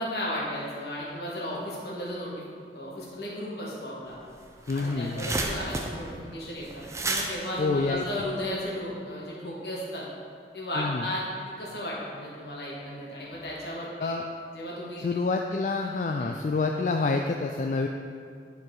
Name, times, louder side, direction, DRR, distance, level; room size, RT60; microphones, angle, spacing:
voice 1, 0.0-2.4 2.7-4.2 4.7-10.1 10.5-11.3 11.6-14.2 14.5-15.0 16.2-16.4, left 1 dB, 70° left, -5 dB, 1.8 m, -35 dB
sound 1, 4.1-4.2 4.5-8.7, right 2 dB, 15° right, 0.5 m, -33 dB
voice 2, 4.7-5.3 7.6-8.0 10.8-11.0 14.0-14.2 15.0-17.9, left 3 dB, 45° left, 3 dB, 0.3 m, -27 dB
10.5 x 4.7 x 3.9 m, 2.2 s
head